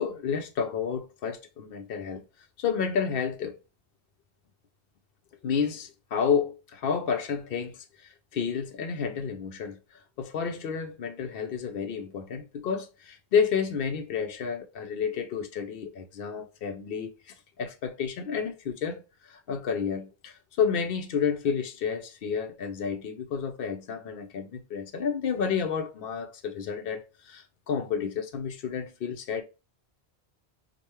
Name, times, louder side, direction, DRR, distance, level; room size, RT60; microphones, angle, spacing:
voice 1, 0.0-2.2 2.6-3.6 5.4-9.8 10.2-29.4, left 6 dB, 65° left, 0.8 m, -30 dB
5.0 x 2.2 x 2.9 m
omnidirectional pair, 1.1 m